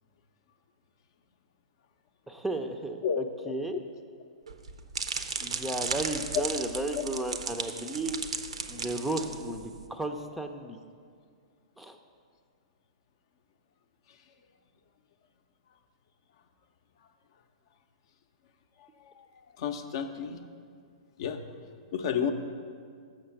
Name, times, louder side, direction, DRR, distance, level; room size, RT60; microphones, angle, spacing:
voice 1, 2.3-3.8 5.4-8.3 8.7-10.8 11.8-12.0, right 2 dB, 5° right, 5 dB, 0.4 m, -34 dB
voice 2, 3.0-3.8 6.3-6.4 6.9-7.0 9.2-9.4 18.8-19.3 19.6-20.4 21.2-21.4 21.9-22.3, left 8 dB, 55° left, 7 dB, 0.6 m, -32 dB
sound 1, 4.5-9.8, right 5 dB, 75° right, 0.5 m, -35 dB
6.6 x 6.2 x 5.8 m, 2.1 s
figure-of-eight pair, 115°, 3 cm